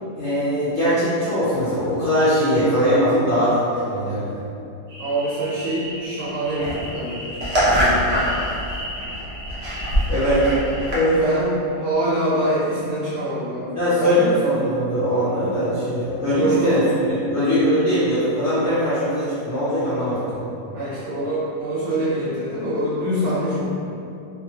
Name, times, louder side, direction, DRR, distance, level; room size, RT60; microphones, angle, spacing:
voice 1, 0.2-4.4 10.1-10.5 10.9-11.2 13.8-16.8 17.3-20.5, equal, 65° left, -11 dB, 0.7 m, -21 dB
sound 1, 4.9-10.9, equal, 90° right, 0.3 m, -25 dB
voice 2, 5.0-8.2 11.1-11.5 11.8-14.3 16.3-16.8 20.7-23.7, right 1 dB, 60° right, -10 dB, 0.9 m, -25 dB
2.6 x 2.6 x 2.7 m, 2.7 s
omnidirectional pair, 1.8 m